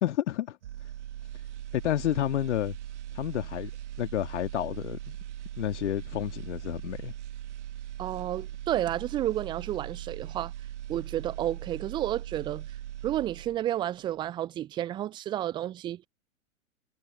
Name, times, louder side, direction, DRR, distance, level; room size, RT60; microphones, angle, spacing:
voice 1, 0.0-0.6 1.7-2.8 3.1-3.7 4.0-5.2 5.6-7.1, left 12 dB, 55° left, 2.1 m, -30 dB
sound 1, 0.6-13.8 14.1-14.3, right 12 dB, 55° right, 2.1 m, -40 dB
voice 2, 8.0-10.5 10.9-12.7 13.0-16.0, right 12 dB, 10° right, 0.5 m, -31 dB
figure-of-eight pair, 110°, 41 cm